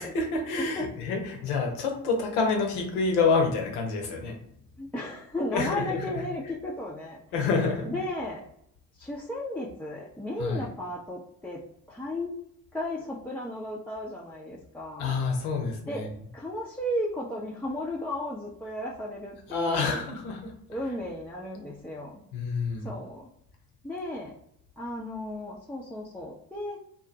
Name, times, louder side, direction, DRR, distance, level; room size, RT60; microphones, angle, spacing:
voice 1, 0.0-4.4 5.5-6.2 7.3-7.9 10.4-10.7 15.0-16.1 19.5-20.5 22.3-22.9, left 4 dB, 70° left, 3 dB, 0.8 m, -28 dB
voice 2, 4.8-7.2 7.9-8.4 8.9-11.6 11.9-12.3 12.7-15.1 15.9-16.0 16.3-20.1 20.7-22.2 22.8-23.3 23.8-24.3 24.8-26.8, left 1 dB, 5° left, -5 dB, 0.4 m, -34 dB
2.5 x 2.1 x 3.7 m, 0.73 s
figure-of-eight pair, 45°, 45 cm